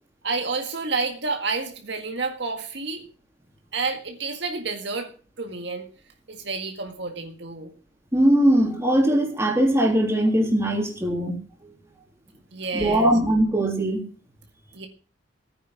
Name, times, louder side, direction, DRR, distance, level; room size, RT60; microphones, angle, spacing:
voice 1, 0.2-3.0 3.7-5.1 5.4-5.9 6.3-7.7 12.5-13.1 14.7-14.9, right 4 dB, 60° right, 5 dB, 1.9 m, -29 dB
voice 2, 8.1-11.4 12.7-14.0, right 1 dB, 15° right, 1 dB, 3.4 m, -20 dB
16.5 x 9.7 x 6.1 m, 0.38 s
head